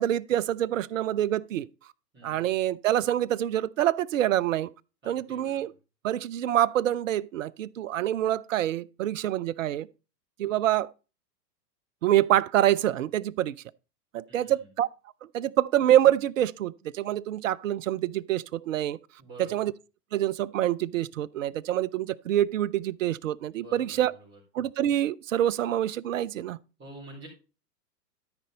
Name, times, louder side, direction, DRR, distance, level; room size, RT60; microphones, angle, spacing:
voice 1, 0.0-1.7 2.2-4.7 5.1-5.7 6.0-9.9 10.4-10.9 12.0-13.6 14.1-14.9 15.3-19.0 19.4-19.7 20.1-24.1 24.5-26.6, right 12 dB, 55° right, 0.5 m, -26 dB
voice 2, 2.1-2.5 5.0-5.7 14.3-14.6 19.2-19.6 23.6-24.4 26.8-27.3, right 1 dB, 20° right, 4.2 m, -48 dB
13.0 x 5.2 x 4.0 m
figure-of-eight pair, 105°, 49 cm